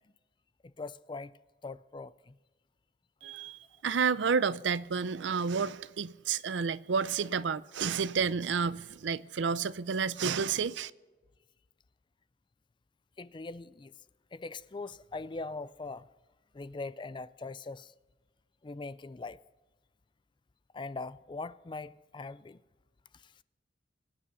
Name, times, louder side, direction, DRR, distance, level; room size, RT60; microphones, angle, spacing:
voice 1, 0.8-1.3 1.6-2.3 13.2-13.9 14.3-16.1 16.5-17.9 18.6-19.4 20.7-22.6, left 3 dB, 25° left, 0.4 m, -41 dB
voice 2, 3.2-10.9, right 6 dB, 90° right, 0.5 m, -30 dB
23.5 x 8.9 x 5.5 m
head